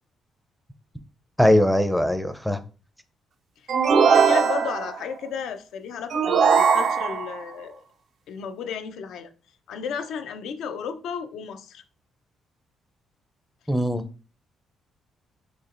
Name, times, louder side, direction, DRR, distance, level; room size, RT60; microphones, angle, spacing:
voice 1, 1.4-2.6 13.7-14.0, equal, ahead, 0.4 m, -20 dB
sound 1, 3.7-5.0 6.1-7.4, right 6 dB, 60° right, 0.4 m, -20 dB
voice 2, 4.0-7.8 8.3-9.3 9.7-11.8, left 6 dB, 80° left, 0.4 m, -33 dB
4.3 x 2.9 x 2.4 m
cardioid pair, 90°, 0 cm